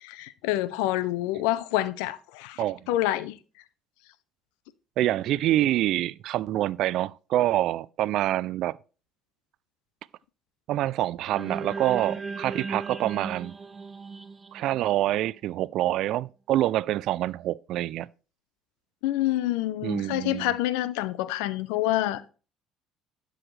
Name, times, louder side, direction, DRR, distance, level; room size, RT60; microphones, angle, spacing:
voice 1, 0.0-3.4 19.0-22.2, left 15 dB, 75° left, 0.6 m, -27 dB
voice 2, 5.0-8.8 10.7-13.6 14.5-18.1 19.8-20.5, right 14 dB, 65° right, 0.3 m, -26 dB
sound 1, 11.3-15.7, right 4 dB, 30° right, 1.3 m, -37 dB
12.0 x 6.3 x 3.2 m
hypercardioid pair, 60°, 0 cm